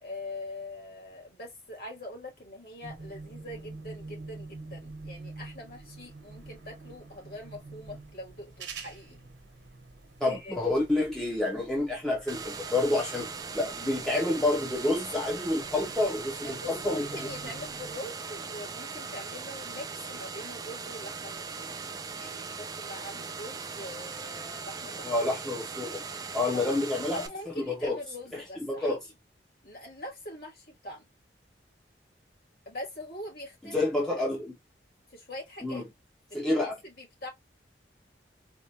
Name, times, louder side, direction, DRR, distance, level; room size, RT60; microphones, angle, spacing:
voice 1, 0.0-9.2 10.2-10.6 16.4-21.8 22.2-25.1 26.5-26.7 27.1-29.0 29.6-31.1 32.7-33.8 34.2-34.3 35.1-35.8 36.3-37.3, left 1 dB, 55° left, 2.4 m, -43 dB
sound 1, 2.8-18.0, right 3 dB, 80° right, 1.0 m, -47 dB
voice 2, 10.2-17.3 25.0-26.0 26.3-27.2 27.6-28.0 28.6-29.0 33.6-34.5 35.6-35.8 36.3-36.7, left 2 dB, 5° left, 0.7 m, -28 dB
sound 2, 12.3-27.3, right 5 dB, 20° right, 0.3 m, -39 dB
4.2 x 2.4 x 2.8 m
head